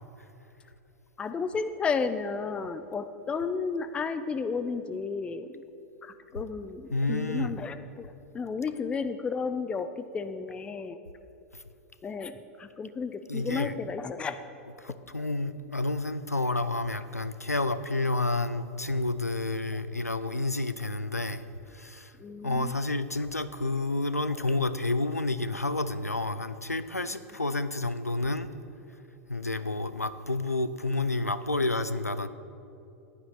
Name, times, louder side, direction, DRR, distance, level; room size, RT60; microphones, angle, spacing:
voice 1, 1.2-5.6 6.0-8.1 8.3-11.0 12.0-14.4 22.2-22.7, left 5 dB, 15° left, 11 dB, 0.4 m, -33 dB
voice 2, 6.9-7.6 11.5-11.6 13.3-13.7 14.8-21.4 21.7-22.1 22.4-28.5 29.3-32.3, left 2 dB, 90° left, 13 dB, 0.4 m, -30 dB
15.0 x 9.9 x 3.2 m, 2.8 s
figure-of-eight pair, 95°, 8 cm